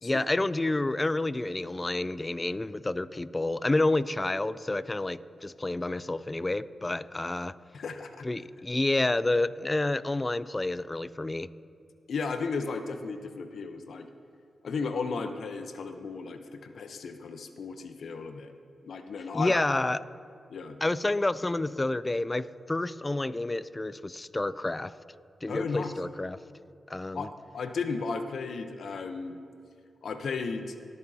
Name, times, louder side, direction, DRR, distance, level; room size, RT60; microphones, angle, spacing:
voice 1, 0.0-7.5 8.2-11.5 19.3-20.0 20.8-24.9 25.4-26.4 26.9-27.3, left 2 dB, 25° left, 16 dB, 0.4 m, -29 dB
voice 2, 7.7-8.3 12.1-14.1 14.6-18.5 18.8-19.6 20.5-20.8 25.5-25.9 27.1-29.4 30.0-30.7, left 4 dB, 70° left, 7 dB, 0.7 m, -35 dB
19.0 x 6.9 x 2.8 m, 2.3 s
supercardioid pair, 45°, 0 cm